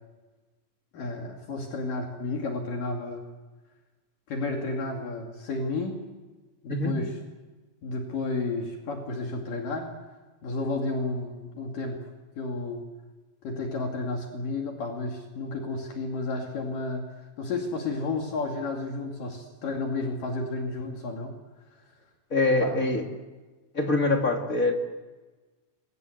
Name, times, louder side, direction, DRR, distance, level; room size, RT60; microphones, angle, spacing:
voice 1, 0.9-3.2 4.3-6.0 6.6-7.1 7.8-9.9 10.4-12.0 12.4-12.9 13.4-21.3 22.6-23.0, left 3 dB, 65° left, 2 dB, 4.0 m, -32 dB
voice 2, 22.3-23.0 23.7-24.7, left 2 dB, 25° left, 2 dB, 2.4 m, -24 dB
26.0 x 23.0 x 8.1 m, 1.2 s
omnidirectional pair, 4.3 m